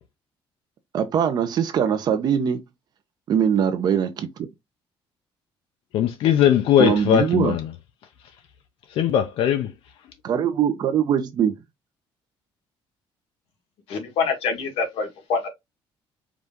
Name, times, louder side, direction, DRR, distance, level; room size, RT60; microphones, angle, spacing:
voice 1, 0.9-2.6 3.3-4.5 6.8-7.6 10.2-11.6, right 8 dB, 45° right, 0.8 m, -22 dB
voice 2, 5.9-7.7 8.9-9.7, left 10 dB, 65° left, 0.6 m, -19 dB
voice 3, 13.9-15.5, left 5 dB, 90° left, 1.7 m, -25 dB
4.9 x 2.7 x 3.6 m
cardioid pair, 170°, 10 cm